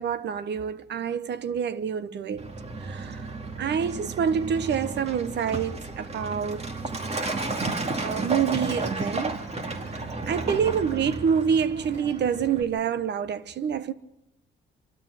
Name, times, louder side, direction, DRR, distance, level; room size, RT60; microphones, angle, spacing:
voice 1, 0.0-2.5 2.8-3.3 3.6-6.6 8.0-9.4 9.9-13.9, right 7 dB, 60° right, 1.1 m, -27 dB
Truck, 2.4-12.6, right 3 dB, 30° right, 2.3 m, -33 dB
27.0 x 12.5 x 9.2 m
cardioid pair, 90°, 20 cm